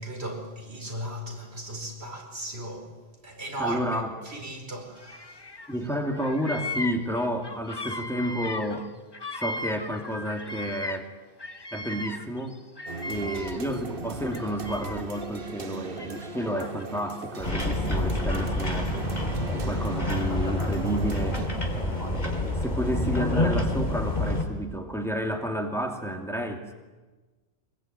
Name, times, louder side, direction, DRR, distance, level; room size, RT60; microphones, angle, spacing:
voice 1, 0.0-2.9 3.2-5.4, right 1 dB, 90° right, 4.9 m, -37 dB
voice 2, 3.6-4.1 5.7-8.9 9.3-11.1 11.7-12.6 13.1-18.9 19.4-21.4 21.7-26.7, equal, ahead, 2.5 m, -31 dB
Bird vocalization bird call bird song, 5.0-5.8 6.0-11.1 11.4-13.8 14.3-15.2 16.0-17.1, left 2 dB, 25° left, 1.2 m, -37 dB
sound 1, 12.9-21.5, right 3 dB, 60° right, 1.5 m, -38 dB
sound 2, 17.4-24.4, left 1 dB, 40° left, 3.5 m, -27 dB
24.5 x 21.5 x 9.2 m
omnidirectional pair, 1.1 m